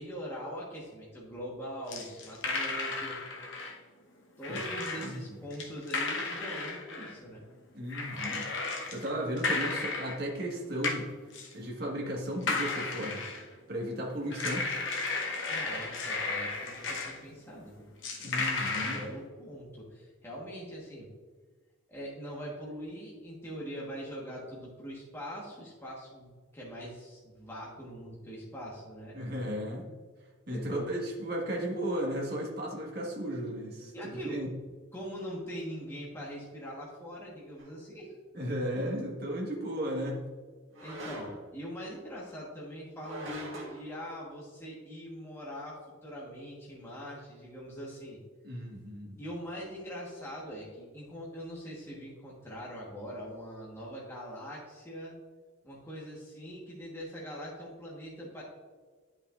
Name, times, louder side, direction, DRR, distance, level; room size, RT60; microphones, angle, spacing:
voice 1, 0.0-3.2 4.4-7.4 15.5-17.9 18.6-21.1 21.9-29.2 30.5-30.9 33.9-34.4 34.9-38.1 40.8-48.2 49.2-55.2 55.6-58.4, equal, 10° left, -5 dB, 1.2 m, -42 dB
sound 1, 1.9-3.7 4.4-5.2 5.5-7.2 7.9-9.1 9.4-10.2 10.8-11.0 11.3-11.5 12.4-13.5 14.3-17.2 18.0-19.1, left 3 dB, 60° left, 1.1 m, -34 dB
voice 2, 7.7-11.1 11.5-13.2 13.7-14.7 18.2-19.0 29.1-29.9 30.5-34.5 38.3-40.2 48.4-49.2, equal, 50° right, -1 dB, 1.5 m, -35 dB
sound 2, 37.6-37.8 40.7-41.5 43.0-43.8, equal, 65° right, 1.6 m, -42 dB
9.7 x 5.6 x 2.5 m, 1.5 s
head